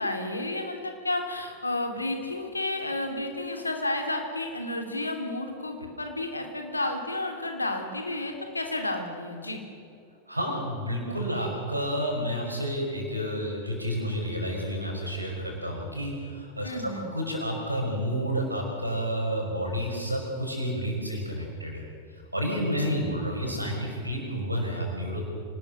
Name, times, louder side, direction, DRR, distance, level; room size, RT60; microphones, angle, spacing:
voice 1, 0.0-9.6 16.6-17.2 22.7-23.1, left 2 dB, 80° left, 4 dB, 3.0 m, -31 dB
voice 2, 10.3-21.8 22.1-25.2, equal, 85° right, 1 dB, 5.6 m, -30 dB
26.0 x 19.5 x 6.3 m, 2.5 s
figure-of-eight pair, 90°, 0 cm